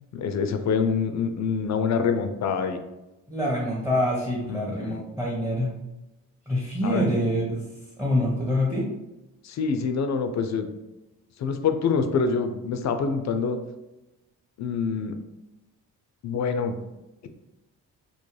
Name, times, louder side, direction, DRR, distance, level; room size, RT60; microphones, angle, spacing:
voice 1, 0.1-2.8 4.4-5.0 6.8-7.2 9.4-10.7 11.4-13.6 14.6-15.1 16.2-16.8, left 5 dB, 45° left, 8 dB, 0.4 m, -26 dB
voice 2, 3.3-5.7 6.5-7.6 8.0-8.8, equal, 10° right, -5 dB, 0.7 m, -25 dB
2.3 x 2.0 x 3.1 m, 0.99 s
supercardioid pair, 45°, 39 cm